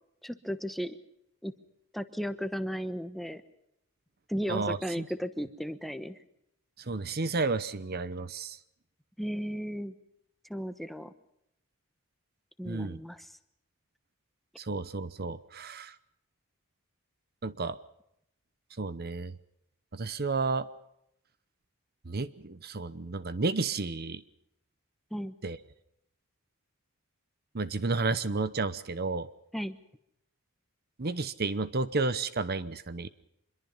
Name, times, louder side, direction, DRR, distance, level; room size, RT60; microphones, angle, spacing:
voice 1, 0.2-1.0 1.4-1.5 1.9-3.4 4.3-6.2 9.2-9.9 10.5-11.1 12.6-13.3 25.1-25.3 29.5-29.8, equal, ahead, 10 dB, 1.1 m, -35 dB
voice 2, 4.5-5.1 6.9-8.6 12.6-13.0 14.6-15.9 17.4-17.8 18.8-19.3 19.9-20.7 22.1-24.2 25.4-25.6 27.5-29.3 31.0-33.1, right 3 dB, 45° right, 15 dB, 0.9 m, -32 dB
26.0 x 22.5 x 5.6 m, 0.78 s
head